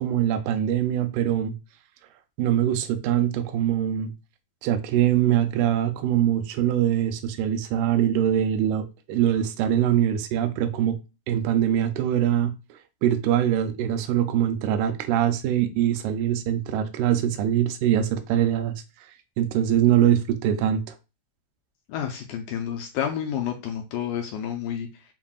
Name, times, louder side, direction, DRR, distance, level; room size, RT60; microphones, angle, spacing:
voice 1, 0.0-1.5 2.4-4.1 4.6-11.0 11.3-18.7 19.4-20.8, right 10 dB, 80° right, 2.2 m, -23 dB
voice 2, 21.9-25.0, left 9 dB, 80° left, 1.8 m, -30 dB
7.2 x 2.6 x 2.3 m
omnidirectional pair, 3.9 m